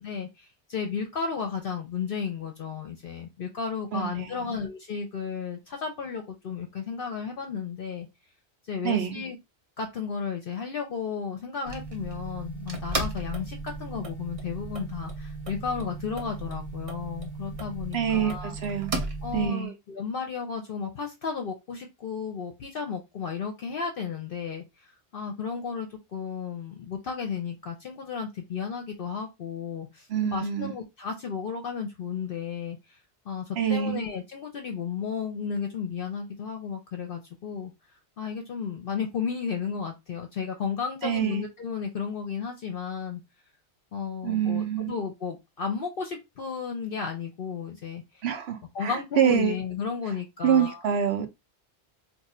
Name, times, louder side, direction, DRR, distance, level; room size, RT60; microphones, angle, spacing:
voice 1, 0.0-8.1 8.6-9.4 9.8-18.5 19.2-33.0 33.3-37.7 38.2-43.2 43.9-48.2 48.7-50.8, left 6 dB, 60° left, 0.8 m, -33 dB
voice 2, 3.9-4.6 8.8-9.2 17.9-19.0 19.3-19.7 30.1-30.7 33.6-34.0 41.0-41.4 44.2-45.0 48.2-49.5 50.4-51.3, right 8 dB, 70° right, 0.9 m, -26 dB
sound 1, 11.7-19.5, right 2 dB, 35° right, 0.7 m, -35 dB
2.6 x 2.4 x 4.1 m
omnidirectional pair, 1.2 m